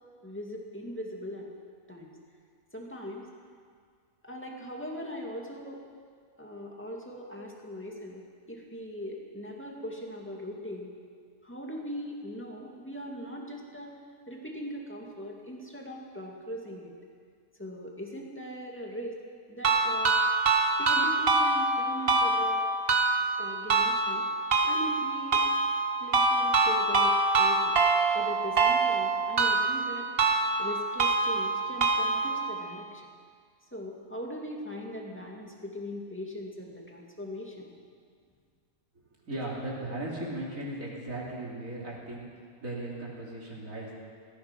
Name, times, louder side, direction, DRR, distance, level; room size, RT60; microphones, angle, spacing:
voice 1, 0.2-1.5 1.9-2.1 2.7-3.3 4.2-5.8 6.4-10.9 11.4-13.9 14.3-16.9 17.6-19.2 19.5-20.2 20.8-22.7 23.4-24.2 24.6-25.4 26.0-27.8 28.1-30.1 30.6-33.0 33.7-37.7, equal, 10° left, -1 dB, 2.2 m, -40 dB
sound 1, 19.6-32.6, right 3 dB, 45° right, 1.2 m, -25 dB
voice 2, 39.2-42.2 42.6-43.9, right 1 dB, 65° right, -4 dB, 3.7 m, -37 dB
17.5 x 14.0 x 6.0 m, 2.1 s
omnidirectional pair, 1.5 m